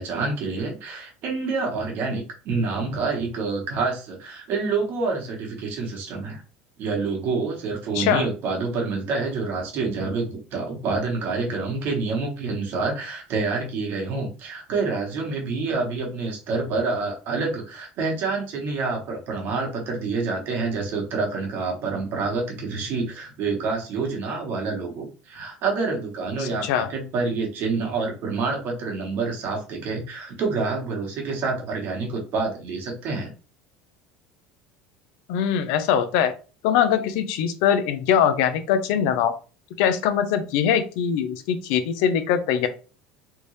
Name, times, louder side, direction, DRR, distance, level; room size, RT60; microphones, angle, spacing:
voice 1, 0.0-6.4 6.8-33.3, right 4 dB, 55° right, 1 dB, 1.5 m, -27 dB
voice 2, 26.4-26.9 35.3-36.3 36.6-39.3 39.8-42.7, left 8 dB, 75° left, 10 dB, 0.6 m, -22 dB
3.4 x 2.6 x 3.2 m, 0.35 s
supercardioid pair, 105°, 4 cm